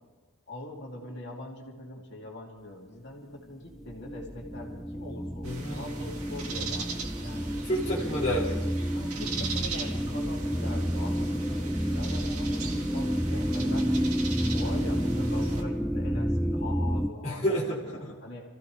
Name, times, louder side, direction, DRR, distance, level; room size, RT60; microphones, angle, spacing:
voice 1, 0.5-7.6 8.9-13.9 14.5-18.4, left 2 dB, 50° left, -2 dB, 2.8 m, -43 dB
sound 1, 3.8-17.1, equal, ahead, 0.5 m, -30 dB
voice 2, 5.4-5.8 7.6-8.6 17.2-18.1, equal, 30° left, -7 dB, 2.4 m, -30 dB
sound 2, 5.4-15.6, right 5 dB, 90° right, 1.9 m, -40 dB
28.0 x 15.0 x 3.4 m, 1.3 s
head